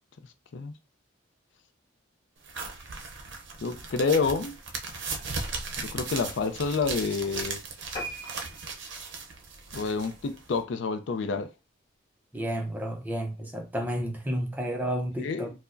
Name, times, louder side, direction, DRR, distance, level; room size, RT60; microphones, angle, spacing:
sound 1, 2.4-10.6, right 4 dB, 60° right, 0.6 m, -37 dB
voice 1, 3.6-4.6 5.8-7.6 9.7-11.5 15.2-15.5, left 4 dB, 60° left, 0.4 m, -28 dB
sound 2, 7.9-10.7 11.2-11.4 11.8-11.9 12.2-12.3 12.5-12.6, equal, 20° left, 0.8 m, -41 dB
voice 2, 12.3-15.5, equal, 10° right, 0.5 m, -31 dB
4.5 x 2.0 x 2.5 m
head